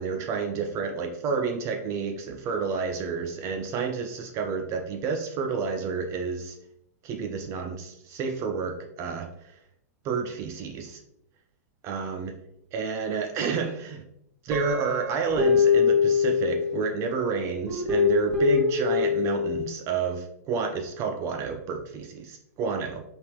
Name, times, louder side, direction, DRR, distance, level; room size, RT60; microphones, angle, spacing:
voice 1, 0.0-6.6 7.0-9.6 10.0-11.0 11.8-12.3 12.7-14.0 14.4-22.9, right 5 dB, 35° right, 3 dB, 0.4 m, -30 dB
Guitar, 14.5-17.0 17.7-19.6, left 6 dB, 5° right, 0.8 m, -23 dB
3.4 x 2.4 x 2.9 m, 0.79 s
hypercardioid pair, 115°, 9 cm